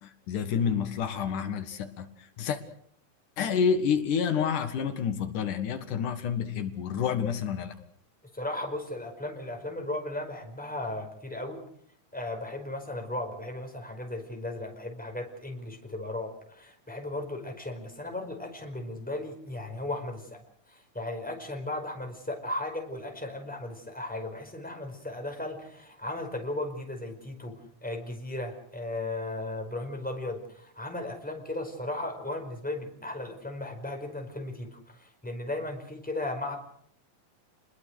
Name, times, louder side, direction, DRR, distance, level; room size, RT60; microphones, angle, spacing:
voice 1, 0.0-2.6 3.4-7.7, left 7 dB, 80° left, 8 dB, 3.2 m, -29 dB
voice 2, 8.3-11.6 12.1-20.4 20.7-27.5 27.8-36.6, left 2 dB, 5° left, 3 dB, 4.6 m, -36 dB
29.5 x 21.0 x 6.4 m, 0.64 s
omnidirectional pair, 3.6 m